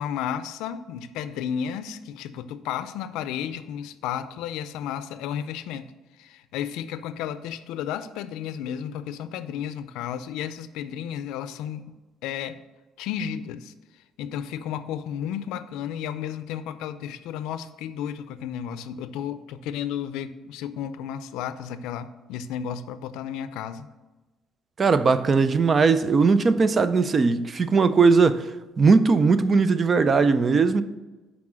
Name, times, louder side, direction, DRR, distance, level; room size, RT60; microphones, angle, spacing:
voice 1, 0.0-5.9 6.2-11.9 12.2-12.6 13.0-13.7 14.2-23.9, left 9 dB, 85° left, 0.4 m, -33 dB
voice 2, 24.8-28.5 28.8-30.8, right 4 dB, 30° right, 0.4 m, -19 dB
6.0 x 4.7 x 6.2 m
cardioid pair, 140°, 0 cm